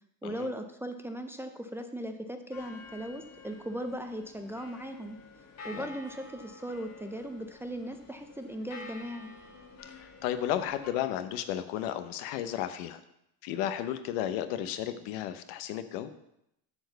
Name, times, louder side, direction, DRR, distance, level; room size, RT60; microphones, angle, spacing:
voice 1, 0.2-5.2 5.7-9.3, equal, 5° right, 5 dB, 0.5 m, -38 dB
sound 1, 2.5-10.9, left 3 dB, 40° left, 1.9 m, -49 dB
voice 2, 10.0-13.0 13.4-16.1, left 11 dB, 80° left, 10 dB, 0.9 m, -33 dB
8.0 x 4.5 x 6.6 m, 0.80 s
cardioid pair, 125°, 41 cm